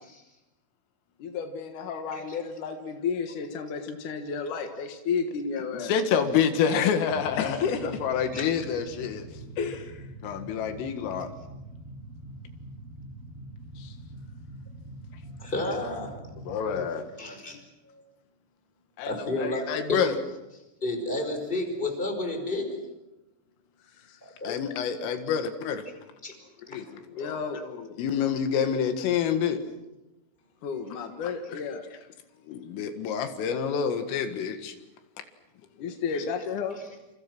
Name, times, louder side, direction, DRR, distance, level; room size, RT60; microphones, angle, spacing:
voice 1, 1.2-5.9 7.4-8.0 9.6-10.1 23.9-24.1 27.2-27.6 30.6-31.9 35.8-36.8, left 5 dB, 65° left, 5 dB, 2.2 m, -32 dB
voice 2, 5.7-9.3 10.2-11.3 13.8-13.9 16.5-17.1 17.5-17.6 19.0-20.2 24.4-25.9 26.7-29.6 32.5-34.7 36.1-36.2, left 7 dB, 85° left, 7 dB, 4.5 m, -28 dB
sound 1, 7.1-16.9, right 1 dB, 85° right, 4.5 m, -44 dB
voice 3, 15.2-16.1 17.2-17.6 17.8-18.0 19.0-19.6 19.9-20.1 20.8-22.7 24.2-24.6 26.2-26.3 26.7-26.8, left 2 dB, 10° left, 4 dB, 4.8 m, -31 dB
29.0 x 28.5 x 6.2 m, 0.98 s
omnidirectional pair, 5.7 m